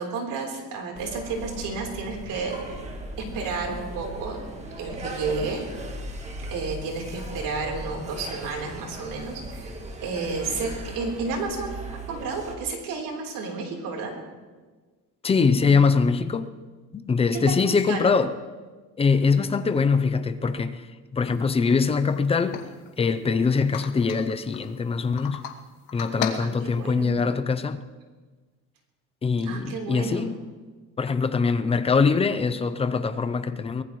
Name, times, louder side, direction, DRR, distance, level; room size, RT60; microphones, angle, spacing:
voice 1, 0.0-2.6 3.3-4.5 4.8-5.6 6.5-9.8 10.0-10.7 10.9-11.7 12.1-14.1 17.5-18.1 26.4-27.2 29.4-30.3, right 4 dB, 65° right, 3.8 m, -31 dB
sound 1, 0.9-12.6, right 1 dB, 20° right, 1.5 m, -37 dB
voice 2, 15.2-16.5 16.9-18.3 19.0-20.9 21.1-22.6 23.0-25.5 25.9-27.8 29.2-30.4 31.0-33.8, left 5 dB, 15° left, 0.5 m, -23 dB
sound 2, 21.2-21.4 21.7-21.8 22.2-23.2 23.7-24.7 25.2-25.6 25.9-27.1, left 8 dB, 75° left, 1.4 m, -34 dB
23.5 x 18.5 x 3.1 m
cardioid pair, 165°, 35 cm